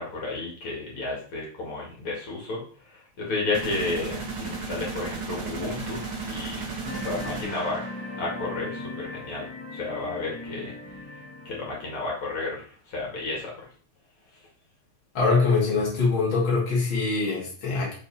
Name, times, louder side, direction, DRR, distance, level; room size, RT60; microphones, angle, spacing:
voice 1, 0.0-2.6 2.9-6.6 6.9-7.8 8.2-9.5 9.7-10.7 11.4-13.5, left 3 dB, 80° left, -3 dB, 3.4 m, -32 dB
sound 1, 3.5-8.3, right 4 dB, 65° right, 2.9 m, -35 dB
sound 2, 6.8-11.9, left 2 dB, 15° left, 1.4 m, -38 dB
voice 2, 15.1-17.9, left 4 dB, 65° left, -5 dB, 3.1 m, -23 dB
7.3 x 5.3 x 4.2 m, 0.43 s
omnidirectional pair, 2.3 m